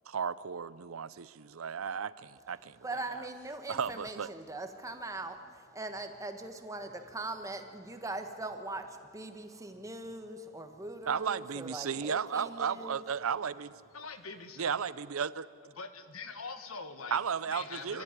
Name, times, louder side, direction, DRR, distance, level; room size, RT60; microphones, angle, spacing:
voice 1, 0.1-3.3 3.7-4.3 11.1-13.7 14.6-15.5 17.1-18.0, right 7 dB, 80° right, 17 dB, 0.6 m, -34 dB
voice 2, 2.8-13.0, right 2 dB, 15° right, 6 dB, 1.3 m, -41 dB
voice 3, 13.9-14.8 15.7-17.2 17.5-18.0, left 4 dB, 85° left, 8 dB, 1.6 m, -43 dB
27.0 x 13.5 x 9.8 m, 2.3 s
head